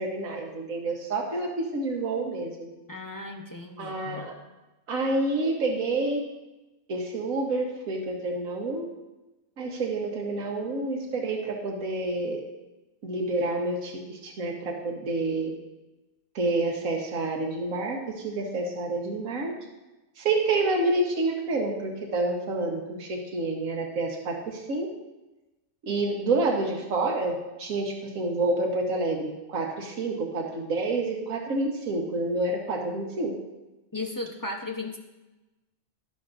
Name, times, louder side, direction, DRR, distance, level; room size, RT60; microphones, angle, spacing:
voice 1, 0.0-2.7 3.8-4.3 4.9-6.2 6.9-8.9 9.6-12.4 13.0-15.5 16.3-19.5 20.2-24.9 25.8-33.3, right 2 dB, 80° right, 0 dB, 1.7 m, -28 dB
voice 2, 2.9-4.3 33.9-35.0, left 2 dB, 20° left, 2 dB, 0.7 m, -36 dB
12.0 x 11.5 x 2.6 m, 1.1 s
omnidirectional pair, 1.4 m